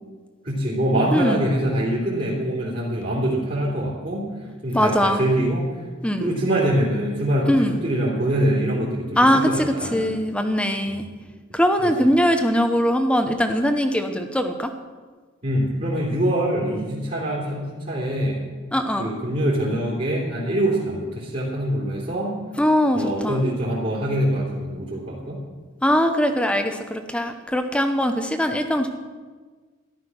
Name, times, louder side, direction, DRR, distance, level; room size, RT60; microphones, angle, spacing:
voice 1, 0.4-4.3 4.6-5.7 6.2-10.1 10.9-11.0 11.8-12.1 15.4-18.4 19.0-22.3 22.9-25.4, right 1 dB, 40° right, -6 dB, 3.0 m, -24 dB
voice 2, 1.1-1.5 4.7-5.2 6.0-6.3 7.5-7.8 9.2-11.1 11.5-14.7 18.7-19.1 22.6-23.4 25.8-28.9, equal, 5° left, 7 dB, 0.9 m, -21 dB
14.0 x 11.5 x 6.2 m, 1.4 s
head